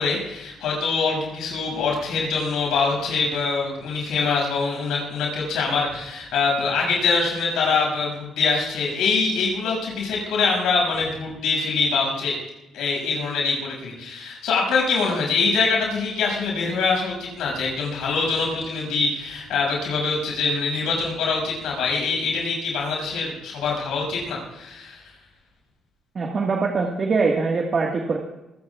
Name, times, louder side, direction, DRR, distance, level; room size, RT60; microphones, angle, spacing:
voice 1, 0.0-12.3 12.7-25.0, left 4 dB, 85° left, -1 dB, 6.6 m, -24 dB
voice 2, 26.1-28.2, right 4 dB, 45° right, 1 dB, 1.7 m, -23 dB
25.5 x 16.0 x 2.4 m, 0.93 s
cardioid pair, 90°, 0 cm